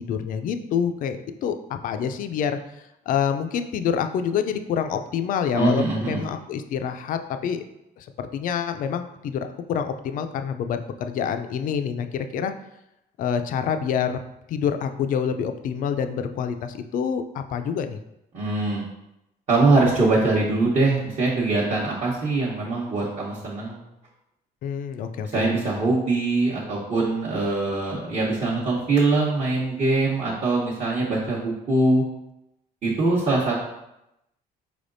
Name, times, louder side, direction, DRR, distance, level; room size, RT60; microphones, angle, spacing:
voice 1, 0.0-2.6 3.1-7.6 8.0-12.5 13.2-14.2 14.5-18.0 24.6-25.5, left 7 dB, 55° left, 8 dB, 0.4 m, -27 dB
voice 2, 5.5-6.2 18.3-18.8 19.5-23.8 25.3-32.0 32.8-33.5, right 3 dB, 40° right, -6 dB, 0.9 m, -22 dB
4.7 x 3.4 x 2.6 m, 0.87 s
cardioid pair, 110°, 17 cm